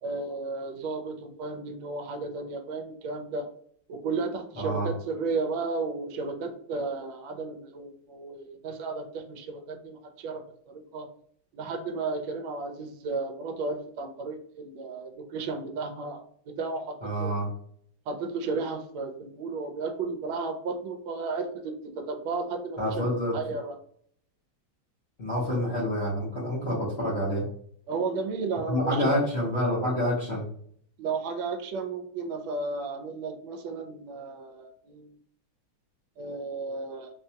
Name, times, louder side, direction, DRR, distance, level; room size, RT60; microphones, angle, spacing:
voice 1, 0.0-3.5 3.9-11.1 11.5-17.4 18.1-23.0 23.3-23.8 27.9-29.3 31.0-35.1 36.2-37.1, right 4 dB, 75° right, 5 dB, 1.3 m, -33 dB
voice 2, 4.6-4.9 17.0-17.5 22.8-23.3 25.2-27.5 28.7-30.4, equal, 50° left, -7 dB, 0.8 m, -27 dB
4.4 x 2.2 x 2.7 m, 0.63 s
omnidirectional pair, 2.3 m